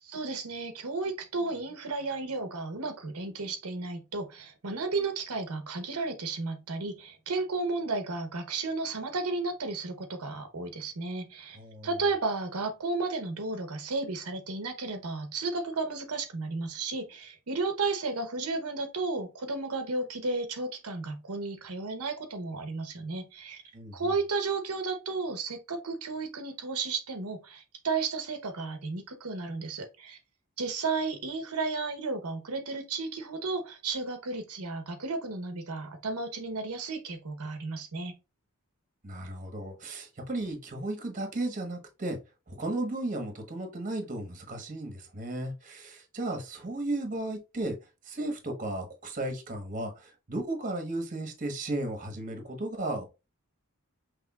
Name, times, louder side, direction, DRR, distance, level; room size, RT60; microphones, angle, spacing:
voice 1, 0.0-11.6 11.8-23.6 23.9-30.2 30.6-38.1, right 3 dB, 85° right, 0.9 m, -33 dB
voice 2, 11.5-11.9 23.7-23.9 39.0-42.2 42.5-47.8 48.0-53.1, right 2 dB, 35° right, 1.2 m, -35 dB
5.8 x 3.2 x 2.3 m
head